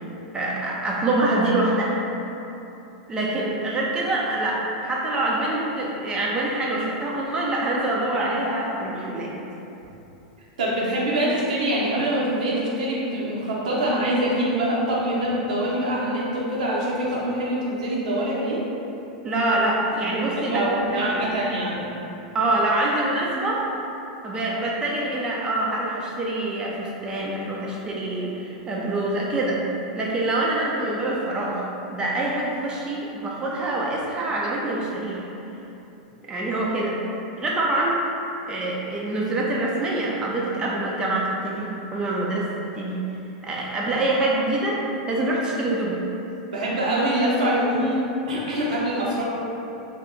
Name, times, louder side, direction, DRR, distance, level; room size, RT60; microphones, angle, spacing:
voice 1, 0.3-2.0 3.1-9.3 19.2-21.3 22.3-23.6 24.2-29.6 29.9-35.3 36.3-37.0 37.4-38.0 38.5-42.5 42.7-43.0 43.4-46.0, right 2 dB, 20° right, -4 dB, 0.4 m, -25 dB
voice 2, 10.6-18.6 20.5-21.8 46.5-48.0 48.3-49.2, right 1 dB, 80° right, -6 dB, 0.8 m, -24 dB
2.7 x 2.3 x 3.8 m, 3.0 s
hypercardioid pair, 110°, 4 cm